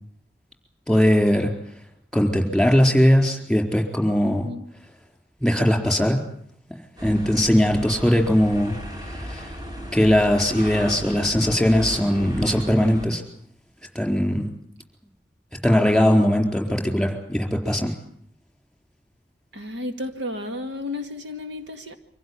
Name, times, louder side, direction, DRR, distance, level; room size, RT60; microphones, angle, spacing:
voice 1, 0.9-1.5 2.1-4.5 5.4-6.2 7.0-8.8 9.0-9.5 9.9-13.2 13.9-14.5 15.6-17.9, equal, ahead, 3 dB, 4.2 m, -20 dB
voice 2, 4.2-4.6 19.5-22.0, left 2 dB, 75° right, 6 dB, 2.1 m, -32 dB
sound 1, 7.0-13.1, equal, 20° right, 2.5 m, -35 dB
25.0 x 16.0 x 9.6 m, 0.65 s
head